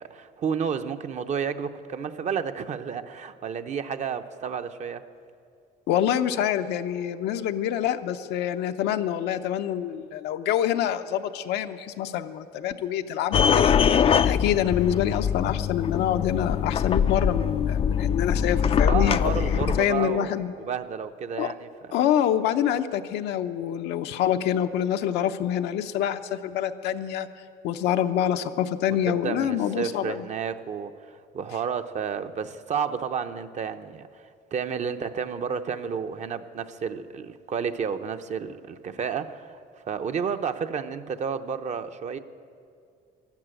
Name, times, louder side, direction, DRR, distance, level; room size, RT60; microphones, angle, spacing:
voice 1, 0.0-5.0 18.9-22.0 29.1-34.1 34.5-39.6 39.9-42.2, right 7 dB, 45° right, 9 dB, 0.7 m, -31 dB
voice 2, 5.9-13.8 14.2-20.5 21.4-21.5 21.9-27.3 27.6-30.2, left 10 dB, 85° left, 7 dB, 0.7 m, -26 dB
sound 1, 13.3-19.8, left 7 dB, 35° left, 0.4 m, -23 dB
13.0 x 12.0 x 9.0 m, 2.4 s
cardioid pair, 110°, 17 cm